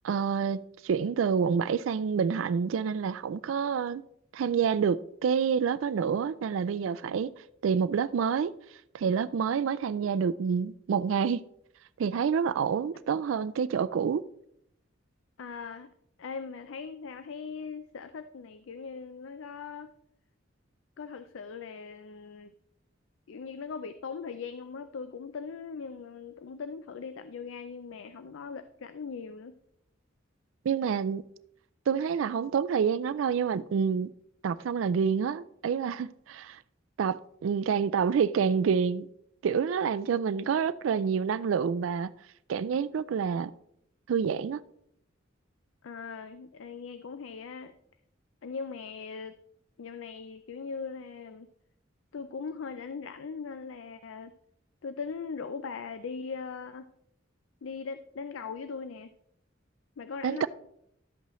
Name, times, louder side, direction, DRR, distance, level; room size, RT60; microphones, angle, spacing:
voice 1, 0.0-4.0 4.3-7.3 7.6-8.5 8.9-11.4 12.0-14.2 30.6-31.2 31.9-34.1 34.4-36.6 37.0-39.1 39.4-42.1 42.5-43.5 44.1-44.6 60.2-60.5, right 6 dB, 85° right, 0.4 m, -28 dB
voice 2, 15.4-15.9 16.2-19.9 21.0-22.5 23.3-29.6 45.8-47.7 48.4-49.4 49.8-51.5 52.1-54.3 54.8-56.9 57.6-59.1 60.0-60.5, left 5 dB, 85° left, 0.5 m, -40 dB
11.5 x 8.2 x 3.1 m
head